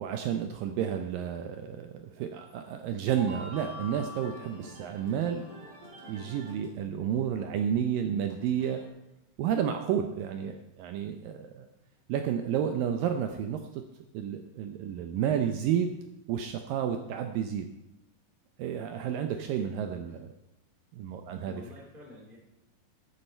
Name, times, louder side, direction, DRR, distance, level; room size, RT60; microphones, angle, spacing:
voice 1, 0.0-5.4 6.1-8.8 9.4-11.7 12.1-13.8 14.1-15.9 16.3-17.7 18.6-20.3 20.9-21.6, right 9 dB, 75° right, 6 dB, 2.1 m, -31 dB
sound 1, 2.2-2.3 2.8-6.7 6.9-8.9, left 1 dB, 30° right, 3.0 m, -46 dB
voice 2, 19.4-19.7 20.1-20.2 21.4-22.4, left 1 dB, 15° left, -2 dB, 1.8 m, -50 dB
14.0 x 10.0 x 4.4 m, 0.92 s
omnidirectional pair, 4.6 m